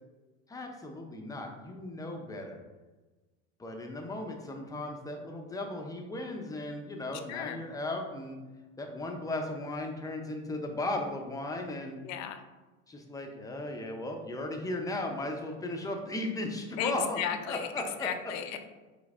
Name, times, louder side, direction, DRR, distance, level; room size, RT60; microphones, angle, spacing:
voice 1, 0.5-2.6 3.6-8.4 8.8-12.0 12.9-18.3, left 2 dB, 10° left, 2 dB, 0.6 m, -36 dB
voice 2, 7.3-7.6 12.0-12.4 16.8-17.7 18.0-18.6, left 9 dB, 50° left, 8 dB, 0.6 m, -34 dB
5.2 x 3.9 x 2.5 m, 1.2 s
supercardioid pair, 110°, 36 cm